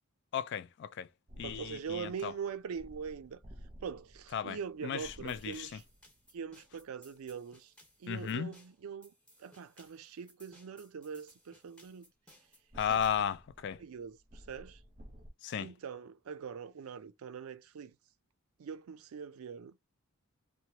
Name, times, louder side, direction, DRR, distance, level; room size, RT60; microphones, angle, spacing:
voice 1, 0.3-1.1 1.4-2.3 4.3-5.8 8.1-8.5 12.8-13.8 15.4-15.7, left 8 dB, 55° left, 0.3 m, -35 dB
sound 1, 1.3-6.8 12.7-15.3, equal, 30° right, 0.7 m, -54 dB
voice 2, 1.4-3.4 3.8-5.8 6.3-7.7 8.0-9.1 9.4-12.1 12.9-13.0 13.8-14.8 15.6-17.9 18.6-19.8, right 6 dB, 80° right, 0.4 m, -43 dB
sound 2, 5.3-13.3, equal, 5° left, 0.9 m, -62 dB
3.0 x 2.2 x 2.8 m
head